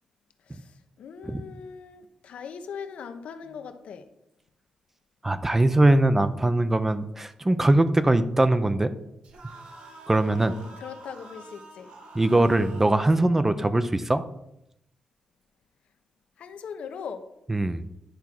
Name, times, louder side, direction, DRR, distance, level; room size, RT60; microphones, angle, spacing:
voice 1, 0.5-4.1 10.5-11.9 16.4-17.3, left 6 dB, 75° left, 8 dB, 0.8 m, -40 dB
voice 2, 5.2-8.9 10.1-10.5 12.1-14.2 17.5-17.8, right 2 dB, 15° right, 12 dB, 0.5 m, -21 dB
sound 1, 9.2-13.2, right 2 dB, 75° right, 1.7 m, -47 dB
10.5 x 3.6 x 6.0 m, 0.83 s
cardioid pair, 115°, 2 cm